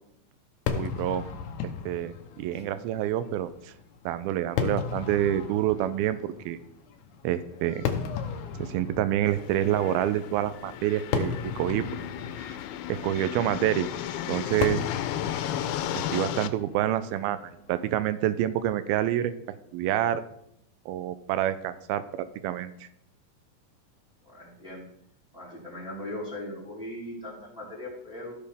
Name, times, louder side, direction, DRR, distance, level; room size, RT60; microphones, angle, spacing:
Fireworks, 0.7-18.0, left 7 dB, 70° left, 1.9 m, -36 dB
voice 1, 0.7-1.2 1.6-3.7 4.1-6.6 7.2-7.8 8.6-11.8 12.9-13.9 14.3-14.8 15.9-19.3 19.7-20.2 20.9-22.7, right 12 dB, 80° right, 13 dB, 2.4 m, -27 dB
sound 1, 9.3-16.5, left 11 dB, 90° left, 2.5 m, -34 dB
voice 2, 24.2-24.8 25.3-28.4, left 1 dB, ahead, -8 dB, 3.7 m, -39 dB
14.5 x 6.7 x 3.5 m, 0.74 s
omnidirectional pair, 4.4 m